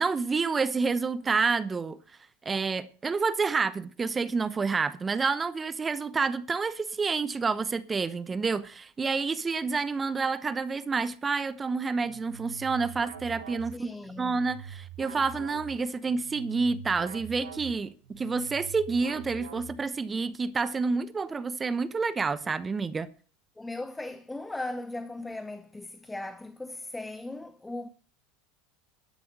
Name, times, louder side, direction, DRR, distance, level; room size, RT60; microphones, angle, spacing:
voice 1, 0.0-2.0 2.4-13.9 14.2-23.1, right 4 dB, 20° right, 0.9 m, -29 dB
sound 1, 12.0-20.1, right 7 dB, 75° right, 1.5 m, -44 dB
voice 2, 13.7-14.4 23.6-27.9, left 2 dB, 10° left, 0.9 m, -38 dB
12.5 x 10.5 x 6.3 m
hypercardioid pair, 80°, 0 cm